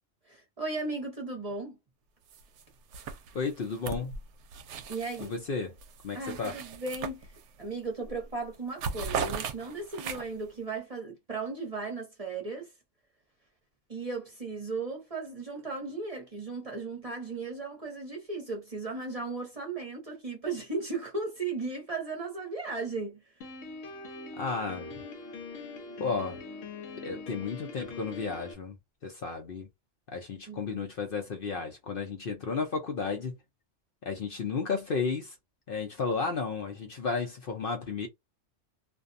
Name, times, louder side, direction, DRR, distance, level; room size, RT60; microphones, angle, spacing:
voice 1, 0.2-1.8 4.9-5.4 6.1-7.3 7.6-12.7 13.9-23.2 30.5-30.8, right 3 dB, 35° right, 0.9 m, -36 dB
sound 1, 2.3-2.6 2.9-5.4 5.8-7.7 8.0-8.3 8.5-10.5, right 6 dB, 70° right, 0.9 m, -37 dB
voice 2, 3.3-4.1 5.2-5.7 6.0-6.6 24.4-25.0 26.0-26.4 27.0-28.8 29.0-29.7 30.1-33.3 34.0-35.3 35.7-38.1, left 4 dB, 55° left, 0.8 m, -33 dB
Piano, 23.4-28.5, left 4 dB, 80° left, 1.1 m, -42 dB
2.5 x 2.2 x 2.5 m
omnidirectional pair, 1.3 m